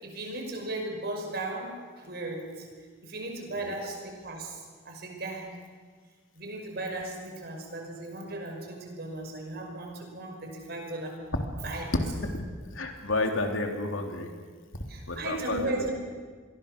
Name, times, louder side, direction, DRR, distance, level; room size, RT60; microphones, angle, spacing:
voice 1, 0.0-2.7 3.0-5.5 6.3-11.2 11.6-11.9 14.9-15.9, right 2 dB, 50° right, 2 dB, 5.6 m, -36 dB
voice 2, 12.7-14.3 15.1-15.8, left 2 dB, 85° left, 4 dB, 3.2 m, -31 dB
28.0 x 21.5 x 6.8 m, 1.5 s
head